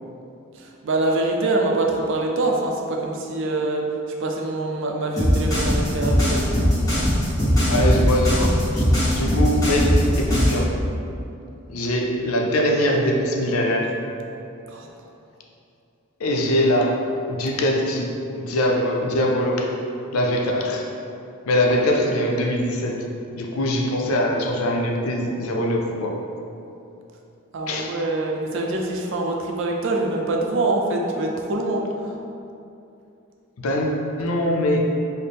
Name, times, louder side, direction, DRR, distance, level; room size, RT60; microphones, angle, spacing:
voice 1, 0.6-3.9 4.2-6.5 14.7-14.9 27.5-32.2, right 2 dB, 60° right, 1 dB, 0.4 m, -24 dB
sound 1, 5.2-10.6, equal, 15° left, 1.1 m, -19 dB
voice 2, 7.7-10.7 11.7-13.9 16.2-17.0 17.3-19.7 20.1-20.9 21.5-23.0 23.3-26.2 27.7-28.0 33.6-34.8, left 1 dB, 90° left, 1 dB, 0.5 m, -22 dB
4.1 x 2.1 x 3.4 m, 2.7 s
head